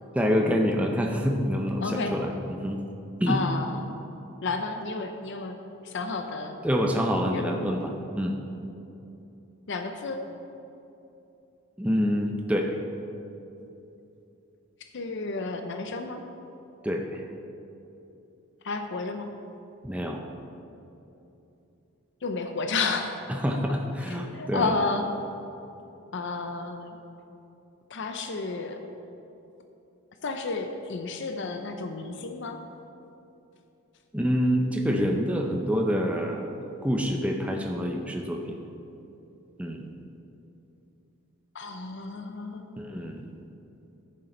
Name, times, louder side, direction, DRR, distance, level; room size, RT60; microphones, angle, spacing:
voice 1, 0.1-2.8 3.2-3.4 6.6-8.4 11.8-12.7 16.8-17.2 19.8-20.2 23.3-24.7 34.1-36.5 36.8-38.6 39.6-39.8 42.8-43.2, equal, 5° right, 1 dB, 0.5 m, -26 dB
voice 2, 1.8-2.2 3.3-3.9 4.4-5.6 5.8-6.6 7.3-7.8 9.7-10.2 14.9-16.2 18.6-19.3 22.2-23.2 24.3-25.1 26.1-27.0 27.9-28.8 30.2-32.6 41.5-42.8, left 3 dB, 55° left, 6 dB, 0.5 m, -31 dB
10.5 x 6.5 x 4.4 m, 2.9 s
head